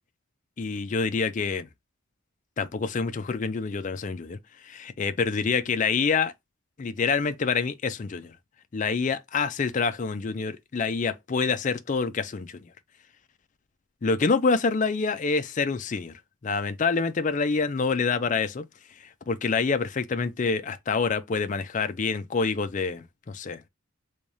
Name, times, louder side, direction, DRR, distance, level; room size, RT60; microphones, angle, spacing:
voice 1, 0.6-1.7 2.6-4.4 4.6-6.3 6.8-8.4 8.7-12.7 14.0-18.6 19.3-23.7, left 4 dB, 35° left, 0.4 m, -27 dB
3.5 x 3.3 x 2.6 m
head